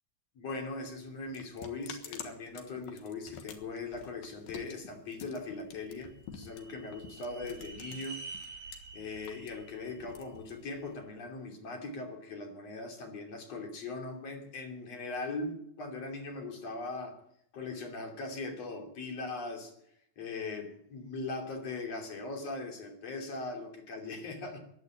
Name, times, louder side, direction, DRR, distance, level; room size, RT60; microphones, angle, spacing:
voice 1, 0.4-8.2 8.9-17.2 17.5-19.7 20.2-24.6, left 3 dB, 50° left, 2 dB, 3.9 m, -40 dB
sound 1, 0.6-8.8 9.1-11.0, left 7 dB, 90° left, 3.3 m, -48 dB
sound 2, 5.7-10.9, right 3 dB, 80° right, 4.0 m, -48 dB
15.5 x 10.5 x 8.8 m, 0.71 s
omnidirectional pair, 4.0 m